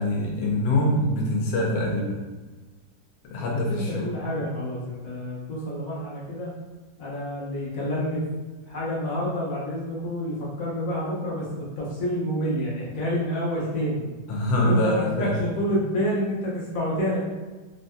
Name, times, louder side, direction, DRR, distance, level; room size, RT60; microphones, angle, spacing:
voice 1, 0.0-2.2 3.2-4.1 14.3-15.3, left 1 dB, 80° left, -1 dB, 1.4 m, -24 dB
voice 2, 3.4-6.5 7.0-8.2 8.7-14.1 14.6-17.2, equal, 55° left, -5 dB, 1.1 m, -28 dB
3.5 x 2.6 x 2.2 m, 1.3 s
omnidirectional pair, 2.0 m